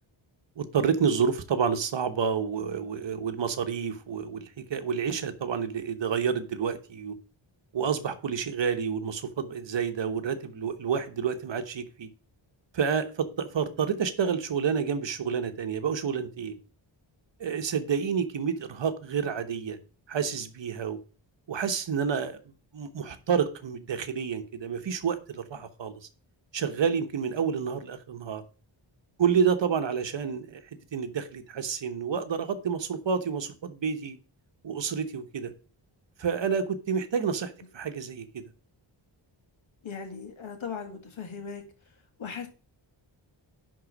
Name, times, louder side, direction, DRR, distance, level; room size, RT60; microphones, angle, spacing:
voice 1, 0.6-7.1 7.7-12.1 12.7-16.5 17.4-19.8 20.1-21.0 21.5-22.4 22.7-25.9 26.5-28.4 29.2-30.6 30.9-34.2 34.6-35.5 36.2-38.4, right 6 dB, 65° right, 8 dB, 1.1 m, -29 dB
voice 2, 39.8-41.6 42.2-42.5, left 6 dB, 80° left, 4 dB, 2.0 m, -38 dB
10.5 x 3.8 x 6.0 m, 0.36 s
wide cardioid pair, 175°, 47 cm